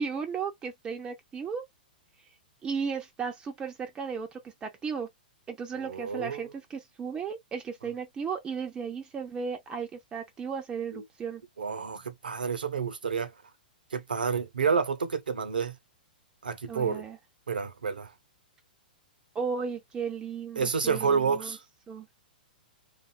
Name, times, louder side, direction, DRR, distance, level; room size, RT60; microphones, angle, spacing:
voice 1, 0.0-1.6 2.6-5.1 5.5-11.4 16.7-17.2 19.3-21.6 21.9-22.1, right 6 dB, 15° right, 0.5 m, -35 dB
voice 2, 5.7-6.5 10.9-11.0 11.6-13.3 13.9-15.8 16.4-17.0 17.5-18.1 20.6-21.6, right 6 dB, 70° right, 0.7 m, -29 dB
2.5 x 2.4 x 2.5 m
figure-of-eight pair, 110°, 5 cm